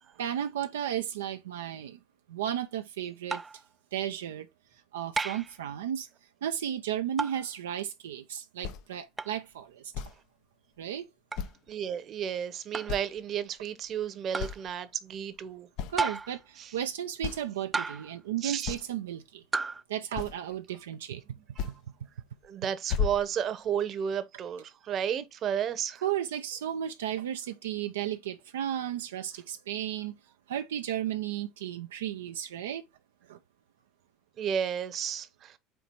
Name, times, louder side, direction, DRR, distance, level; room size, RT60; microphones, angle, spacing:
voice 1, 0.2-2.0 2.3-3.4 3.9-4.5 4.9-6.1 6.4-9.8 10.8-11.1 15.9-19.4 19.9-21.2 21.7-21.8 26.0-30.1 30.5-32.8 33.3-33.4, right 10 dB, 85° right, 0.4 m, -34 dB
sound 1, 3.3-3.6 5.2-5.6 7.2-7.5 9.2-9.4 11.3-11.5 12.7-13.0 14.3-14.6 16.0-16.4 17.7-18.2 19.5-19.8, right 4 dB, 20° right, 0.3 m, -32 dB
sound 2, 8.6-8.8 9.9-10.2 11.3-11.7 12.2-12.3 12.9-13.2 13.6-14.0 14.4-14.7 15.4-15.5 15.8-16.0 16.8-16.9 17.2-17.5 18.6-18.9 20.1-20.5 21.6-21.8 22.2-22.5 22.9-23.8, left 7 dB, 65° left, 0.7 m, -34 dB
voice 2, 11.7-15.7 16.6-16.7 18.4-18.7 21.6-21.7 22.4-26.0 34.4-35.6, right 8 dB, 45° right, 0.9 m, -32 dB
4.5 x 4.0 x 5.3 m
hypercardioid pair, 80°, 0 cm